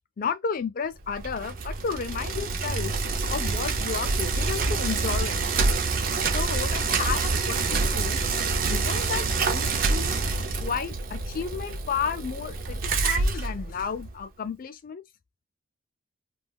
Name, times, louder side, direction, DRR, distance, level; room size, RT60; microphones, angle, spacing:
voice 1, 0.2-2.9 3.3-5.8 6.3-8.2 8.7-10.2 10.6-15.0, left 6 dB, 40° left, 0.3 m, -32 dB
Bicycle, 1.0-14.2, right 3 dB, 40° right, 0.4 m, -27 dB
2.2 x 2.2 x 3.4 m
head